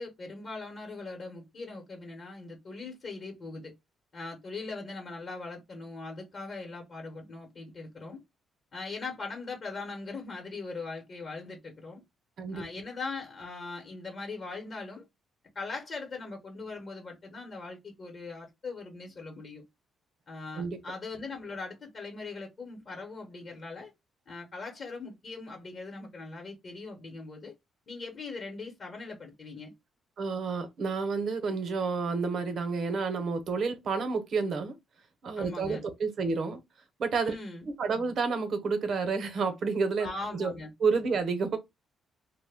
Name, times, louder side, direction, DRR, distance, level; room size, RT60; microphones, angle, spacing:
voice 1, 0.0-3.7 4.1-8.2 8.7-12.0 12.5-15.0 15.5-19.6 20.3-23.9 24.3-27.5 27.9-29.7 35.4-35.9 37.2-37.6 40.0-40.7, left 3 dB, 50° left, 0.8 m, -40 dB
voice 2, 30.2-34.7 35.2-36.6 37.0-37.3 37.8-40.5 40.8-41.6, right 4 dB, 60° right, 0.7 m, -30 dB
2.2 x 2.0 x 3.4 m
cardioid pair, 90°, 0 cm